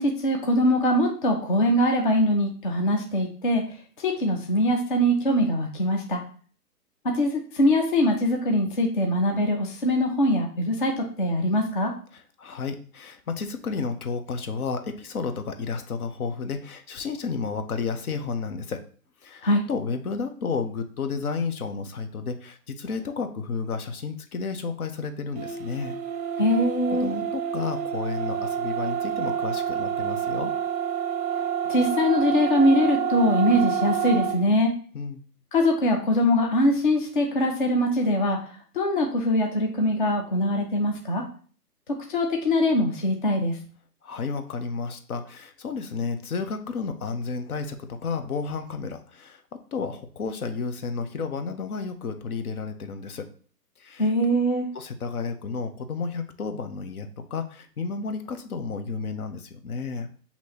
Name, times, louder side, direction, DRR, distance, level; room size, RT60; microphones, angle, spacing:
voice 1, 0.0-3.6 4.0-6.2 7.0-11.9 19.4-19.7 26.4-27.1 31.7-34.7 35.5-38.4 38.8-41.2 42.1-43.6 54.0-54.6, left 1 dB, 35° left, 2 dB, 0.4 m, -22 dB
voice 2, 12.1-18.8 19.2-26.0 26.9-30.5 34.9-35.2 44.0-49.4 49.7-53.3 53.8-54.1 54.7-60.1, left 5 dB, 65° left, 7 dB, 0.8 m, -32 dB
sound 1, 25.3-34.4, right 8 dB, 25° right, 0.6 m, -28 dB
6.0 x 2.8 x 2.8 m, 0.43 s
hypercardioid pair, 140°, 48 cm